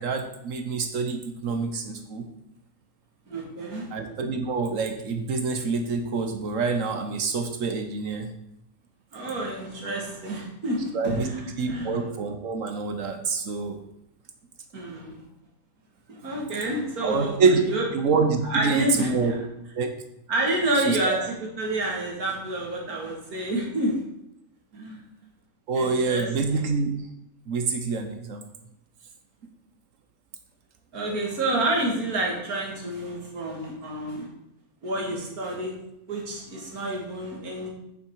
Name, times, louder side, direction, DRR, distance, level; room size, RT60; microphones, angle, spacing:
voice 1, 0.0-2.3 3.9-8.3 10.9-11.3 11.6-13.8 17.0-17.6 17.9-19.3 19.7-19.9 20.9-21.2 25.7-26.9 27.5-28.4, right 4 dB, 65° right, 6 dB, 1.4 m, -26 dB
voice 2, 3.3-3.9 9.1-12.0 14.7-15.2 16.1-17.4 17.7-17.9 18.4-19.3 20.3-24.0 24.7-25.0 25.7-26.7 30.9-34.3 34.8-35.8 36.1-37.7, right 1 dB, 85° right, -1 dB, 2.5 m, -29 dB
8.3 x 7.4 x 4.7 m, 0.81 s
omnidirectional pair, 1.5 m